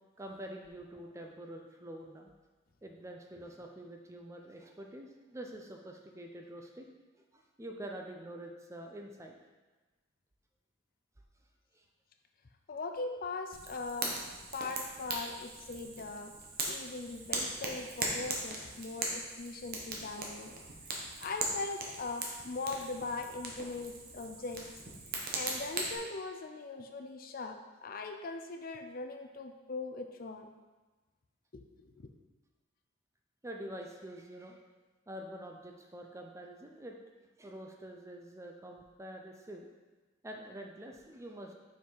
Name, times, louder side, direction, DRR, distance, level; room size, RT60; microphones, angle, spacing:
voice 1, 0.2-2.3 2.8-6.9 7.3-9.4 11.7-11.8 33.4-34.6 35.1-37.0 37.4-39.7 40.2-41.5, right 1 dB, 15° right, 2 dB, 0.5 m, -46 dB
voice 2, 12.7-14.2 14.5-16.3 16.7-20.6 20.9-24.7 25.3-30.5 31.5-32.1, left 3 dB, 45° left, 5 dB, 0.5 m, -40 dB
Fire, 13.5-26.0, right 3 dB, 45° right, 1.0 m, -39 dB
5.7 x 4.7 x 4.6 m, 1.2 s
head